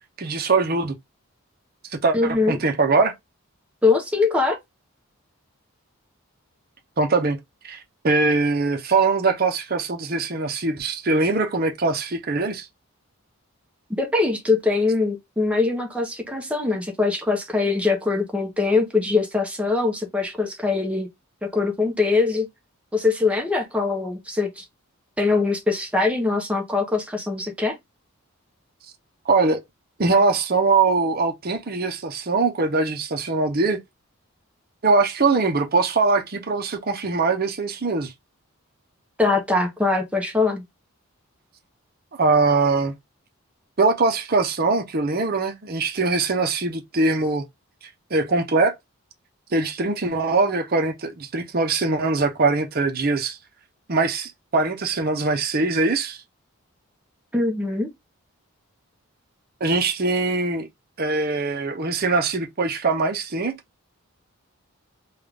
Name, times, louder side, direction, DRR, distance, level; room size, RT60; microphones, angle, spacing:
voice 1, 0.2-1.0 1.9-3.1 7.0-7.4 7.6-12.7 29.3-29.6 30.0-33.8 34.8-38.1 42.2-42.9 43.8-47.5 48.1-48.7 49.5-53.4 53.9-56.2 59.6-60.7 61.0-63.6, right 3 dB, 40° right, 0.7 m, -22 dB
voice 2, 2.1-2.6 3.8-4.6 14.0-21.1 21.4-22.5 22.9-24.6 25.2-27.8 39.2-40.6 57.3-57.9, left 3 dB, 5° right, 0.8 m, -22 dB
3.6 x 2.4 x 3.4 m
head